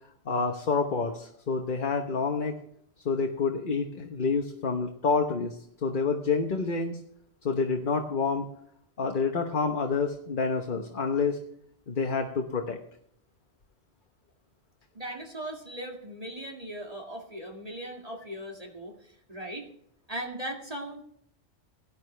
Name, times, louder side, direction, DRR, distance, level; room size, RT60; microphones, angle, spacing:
voice 1, 0.3-2.6 3.0-7.0 7.4-8.5 9.0-11.4 11.9-12.8, left 4 dB, 45° left, 4 dB, 1.2 m, -28 dB
voice 2, 14.9-19.7 20.1-21.0, right 1 dB, 30° right, 0 dB, 2.2 m, -38 dB
17.5 x 11.0 x 3.3 m, 0.71 s
omnidirectional pair, 1.2 m